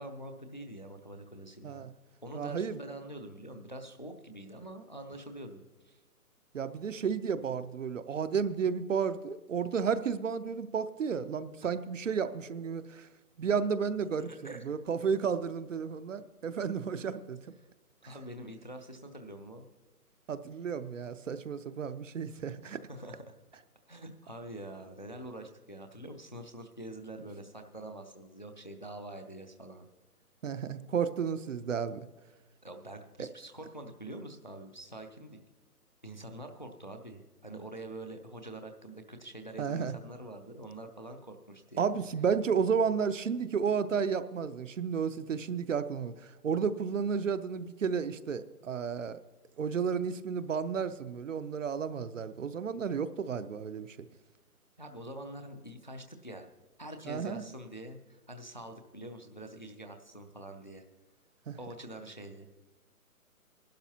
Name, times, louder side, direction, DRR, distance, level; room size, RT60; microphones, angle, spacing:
voice 1, 0.0-1.9 2.2-6.0 11.6-11.7 14.0-14.8 18.0-19.7 22.6-23.3 23.9-29.9 32.6-35.4 36.0-42.0 54.8-56.5 56.8-60.8 61.6-62.5, right 1 dB, 35° left, 6 dB, 0.4 m, -45 dB
voice 2, 2.3-2.8 6.5-13.1 13.4-17.4 18.0-18.1 20.3-22.8 30.4-32.0 33.2-33.3 39.6-39.9 41.8-46.1 46.4-49.2 49.6-54.0 57.1-57.4 61.5-61.6, right 6 dB, 55° right, 12 dB, 0.6 m, -32 dB
20.0 x 11.5 x 2.8 m, 1.1 s
hypercardioid pair, 170°, 46 cm